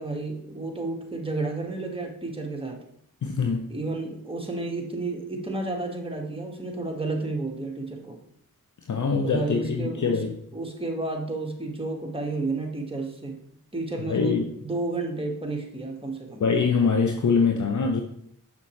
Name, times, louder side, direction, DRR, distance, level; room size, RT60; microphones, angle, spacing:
voice 1, 0.0-2.8 3.7-8.2 9.2-10.2 10.5-13.4 13.7-16.4, right 2 dB, 15° right, 1 dB, 1.7 m, -31 dB
voice 2, 3.2-3.8 8.9-10.3 14.1-14.5 16.4-18.0, left 5 dB, 55° left, 4 dB, 0.7 m, -24 dB
7.1 x 6.0 x 3.2 m, 0.69 s
cardioid pair, 45°, 36 cm